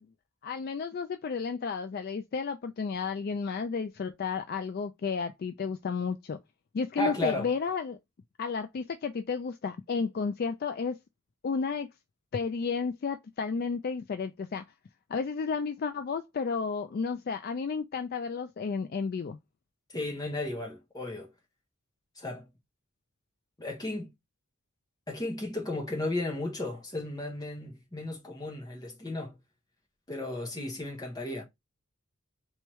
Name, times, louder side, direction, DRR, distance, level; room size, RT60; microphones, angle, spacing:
voice 1, 0.4-6.4 6.7-8.0 8.4-11.0 11.4-11.9 12.3-14.6 15.1-19.4, left 5 dB, 45° left, 0.3 m, -32 dB
voice 2, 7.0-7.5 19.9-21.3 22.2-22.5 23.6-24.1 25.1-29.4 30.1-31.4, left 2 dB, 15° left, 1.1 m, -34 dB
3.4 x 3.1 x 3.0 m
head